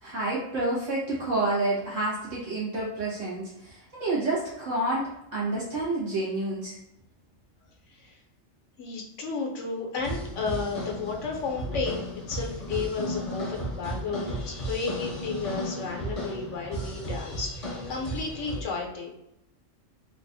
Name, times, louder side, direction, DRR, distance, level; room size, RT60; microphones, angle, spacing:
voice 1, 0.0-6.8, right 2 dB, 70° right, -7 dB, 1.8 m, -29 dB
voice 2, 8.8-19.1, left 4 dB, 70° left, 0 dB, 1.1 m, -33 dB
sound 1, 10.0-18.6, equal, 35° left, 0.8 m, -34 dB
4.0 x 2.5 x 2.6 m, 0.81 s
omnidirectional pair, 1.4 m